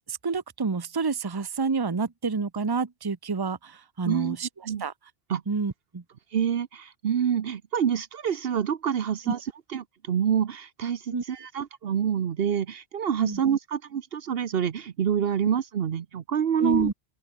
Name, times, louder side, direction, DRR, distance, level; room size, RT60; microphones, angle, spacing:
voice 1, 0.1-4.5 4.8-4.9 5.5-6.0 9.3-9.4 11.1-11.2 13.2-13.4 16.6-16.9, right 4 dB, 25° right, 0.9 m, -28 dB
voice 2, 4.0-4.4 4.6-4.8 5.3-5.4 6.3-9.4 9.7-16.9, right 8 dB, 65° right, 1.0 m, -27 dB
open air
omnidirectional pair, 1.1 m